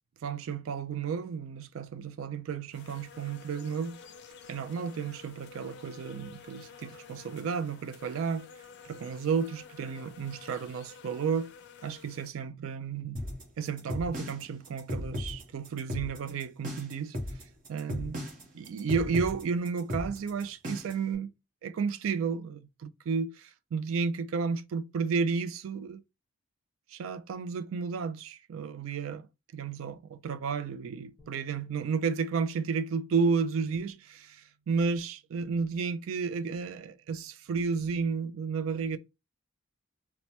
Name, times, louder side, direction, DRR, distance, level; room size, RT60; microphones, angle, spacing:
voice 1, 0.2-4.0 4.5-8.5 8.8-11.5 11.8-13.3 13.6-17.2 17.7-18.2 18.5-21.3 21.6-26.0 26.9-29.3 29.5-39.0, right 5 dB, 70° right, 0.3 m, -32 dB
sound 1, 2.7-12.3, left 6 dB, 55° left, 0.4 m, -51 dB
sound 2, 13.2-21.1, left 1 dB, 40° right, 0.9 m, -36 dB
sound 3, 31.2-37.4, right 2 dB, 15° right, 1.3 m, -63 dB
3.1 x 2.1 x 2.7 m
head